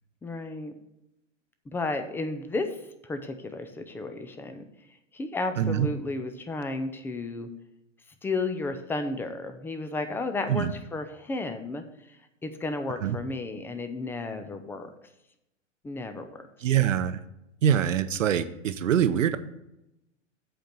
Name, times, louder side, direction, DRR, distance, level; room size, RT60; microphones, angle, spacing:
voice 1, 0.2-0.7 1.7-2.8 3.0-4.7 5.1-7.5 8.2-11.8 12.4-14.9 15.8-16.5, left 3 dB, 5° left, 7 dB, 0.4 m, -33 dB
voice 2, 5.6-5.9 10.5-10.7 13.0-13.2 16.6-17.2 17.6-19.4, right 9 dB, 90° right, 12 dB, 0.8 m, -24 dB
8.0 x 4.5 x 6.6 m, 0.87 s
hypercardioid pair, 120°, 37 cm